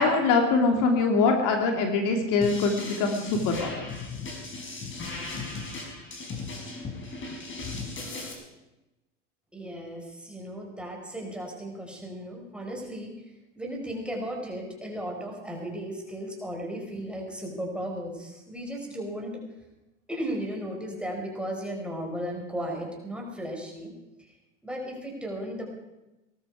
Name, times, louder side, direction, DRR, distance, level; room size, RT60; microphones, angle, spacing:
voice 1, 0.0-3.8, left 4 dB, 55° left, 3 dB, 2.8 m, -23 dB
sound 1, 2.4-8.3, left 3 dB, 30° left, 5.1 m, -37 dB
voice 2, 9.5-13.1 13.6-19.4 20.1-23.9 24.2-24.3 24.6-25.7, equal, 5° right, -1 dB, 5.0 m, -35 dB
19.0 x 13.5 x 4.9 m, 1.0 s
hypercardioid pair, 95°, 37 cm